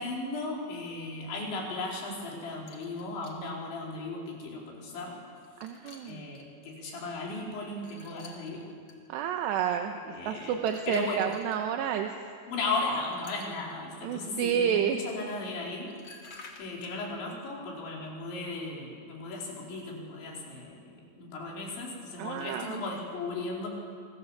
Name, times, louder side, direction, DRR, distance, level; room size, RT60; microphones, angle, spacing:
voice 1, 0.0-5.2 6.0-8.7 10.0-10.6 10.9-11.3 12.5-16.0 16.6-23.7, left 3 dB, 90° left, -2 dB, 6.9 m, -36 dB
sound 1, 2.7-3.4 4.3-4.4 5.3-6.5 7.8-9.0 10.6-11.6 13.0-13.7 15.5-15.6 15.9-17.0, left 3 dB, 40° left, 3.0 m, -52 dB
voice 2, 5.6-6.2 9.1-10.0 10.3-12.1 14.0-15.0 22.2-22.8, right 9 dB, 80° right, 5 dB, 3.2 m, -30 dB
29.0 x 24.5 x 7.4 m, 2.2 s
omnidirectional pair, 5.1 m